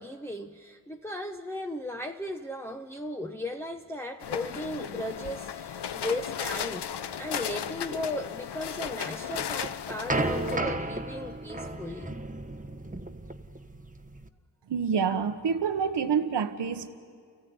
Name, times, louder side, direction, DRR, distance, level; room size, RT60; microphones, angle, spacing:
voice 1, 0.0-6.8 7.2-12.1, left 1 dB, 5° left, 2 dB, 1.0 m, -36 dB
sound 1, 4.2-10.6, left 8 dB, 60° left, 0.9 m, -35 dB
sound 2, 9.3-14.3, right 2 dB, 15° right, 1.3 m, -33 dB
voice 2, 14.7-16.9, right 6 dB, 65° right, 9 dB, 1.3 m, -27 dB
30.0 x 14.5 x 9.6 m, 2.2 s
cardioid pair, 50°, 45 cm